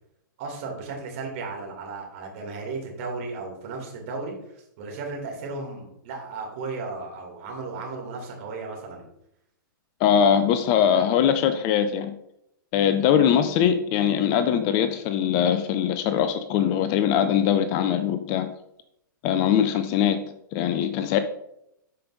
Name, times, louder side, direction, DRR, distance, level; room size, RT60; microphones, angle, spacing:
voice 1, 0.4-9.0, right 3 dB, 40° right, -1 dB, 2.4 m, -35 dB
voice 2, 10.0-12.2 12.7-18.5 19.2-20.2 20.5-21.2, left 9 dB, 30° left, 11 dB, 0.4 m, -21 dB
11.0 x 5.1 x 2.6 m, 0.79 s
figure-of-eight pair, 110°, 11 cm